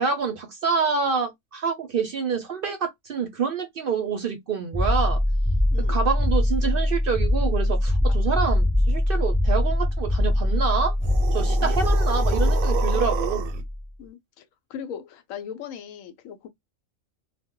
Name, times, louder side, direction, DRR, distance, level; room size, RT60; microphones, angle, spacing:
voice 1, 0.0-5.2 5.8-10.9 11.3-13.4, right 5 dB, 60° right, 0.6 m, -27 dB
sound 1, 4.7-13.8, left 1 dB, 5° right, 0.4 m, -22 dB
sound 2, 11.0-13.6, right 10 dB, 85° right, 1.0 m, -32 dB
voice 2, 14.0-14.4 14.7-16.5, left 8 dB, 85° left, 1.0 m, -39 dB
2.2 x 2.1 x 3.6 m
omnidirectional pair, 1.4 m